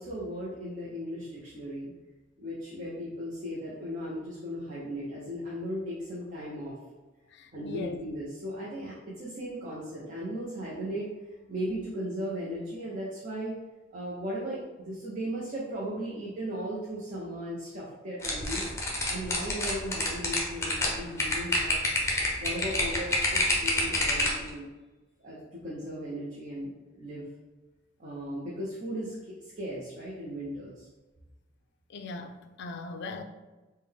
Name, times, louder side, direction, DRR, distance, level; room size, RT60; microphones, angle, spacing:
voice 1, 0.0-1.9 2.4-6.7 7.5-11.1 11.5-13.6 13.9-18.7 19.1-21.8 22.4-24.7 25.2-27.3 28.0-30.9, equal, 40° right, -7 dB, 0.6 m, -37 dB
voice 2, 7.3-8.0 31.9-33.2, left 3 dB, 60° left, 5 dB, 0.4 m, -39 dB
sound 1, 18.2-24.5, left 1 dB, 15° left, 0.6 m, -27 dB
3.6 x 2.2 x 3.4 m, 1.2 s
head